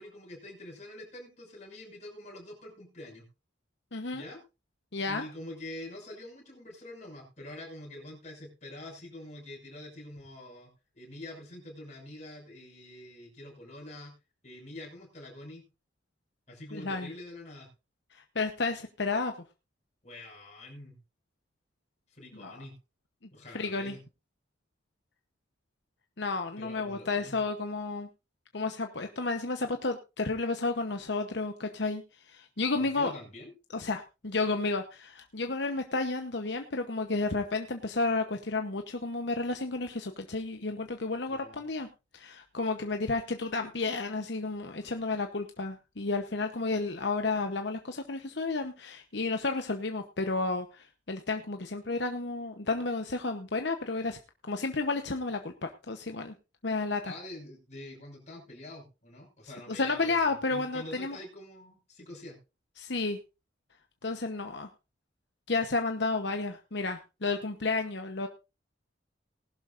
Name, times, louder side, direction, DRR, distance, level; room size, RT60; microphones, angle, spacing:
voice 1, 0.0-3.3 4.1-4.4 5.0-14.1 14.4-15.6 16.5-17.7 20.0-21.0 22.1-22.7 23.3-24.0 26.6-27.4 32.8-33.5 41.3-41.6 57.0-62.4, left 1 dB, 35° left, -1 dB, 6.1 m, -46 dB
voice 2, 3.9-4.2 4.9-5.2 16.7-17.1 18.1-19.3 22.4-22.6 23.5-24.0 26.2-28.1 28.5-32.0 32.3-33.1 33.7-41.9 42.1-54.2 54.5-56.3 56.6-57.1 59.7-61.2 62.8-63.2 64.0-64.7 65.5-68.3, left 3 dB, 60° left, 6 dB, 1.0 m, -32 dB
19.0 x 11.5 x 2.6 m, 0.28 s
head